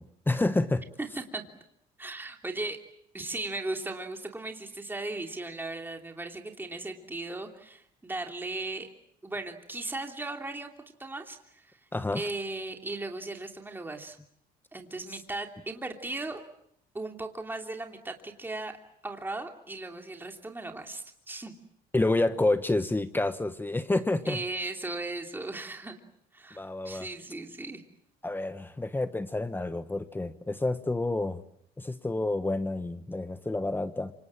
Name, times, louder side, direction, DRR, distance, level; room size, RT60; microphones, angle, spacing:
voice 1, 0.0-0.8 11.9-12.2 15.1-15.2 21.9-24.4 26.5-27.1 28.2-31.4 31.8-34.1, left 2 dB, 10° left, 11 dB, 1.2 m, -29 dB
voice 2, 1.0-1.4 2.0-2.8 3.1-8.9 9.2-10.7 11.0-11.8 12.1-14.2 14.7-16.4 16.9-18.7 19.0-21.5 24.2-26.0 26.3-27.8, right 2 dB, 10° right, 3 dB, 3.1 m, -37 dB
27.5 x 26.0 x 7.5 m, 0.73 s
cardioid pair, 110°, 17 cm